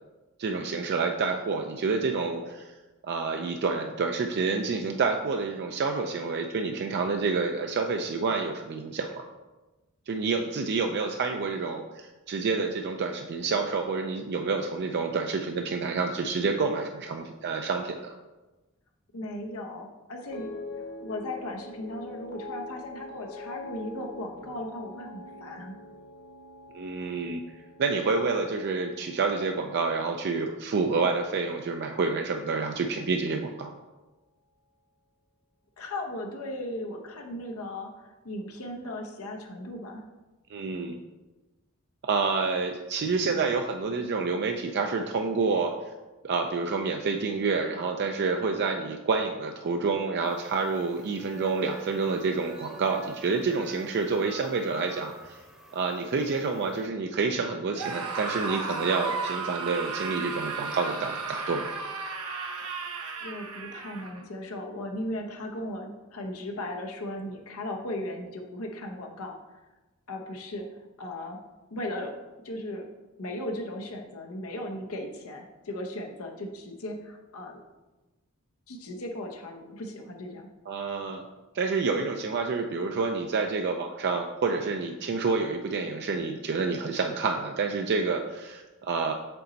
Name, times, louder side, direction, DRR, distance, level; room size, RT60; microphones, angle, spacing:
voice 1, 0.4-2.7 3.0-9.3 10.1-18.2 26.7-27.4 27.8-33.7 40.5-41.0 42.0-45.7 46.2-55.4 55.7-61.7 80.7-81.2 81.5-89.1, right 4 dB, 50° right, 4 dB, 0.4 m, -28 dB
voice 2, 19.1-20.5 20.8-25.7 35.8-40.0 63.2-69.4 70.1-71.4 71.7-72.1 72.4-72.9 73.2-77.6 78.7-80.5, left 1 dB, 80° left, 2 dB, 0.8 m, -37 dB
sound 1, 20.3-30.7 31.0-31.5, left 2 dB, 50° left, 0.6 m, -44 dB
sound 2, 50.2-56.8, right 2 dB, 5° right, 0.8 m, -47 dB
Screaming, 57.7-64.2, right 4 dB, 90° right, 0.8 m, -34 dB
6.7 x 4.1 x 3.9 m, 1.1 s
head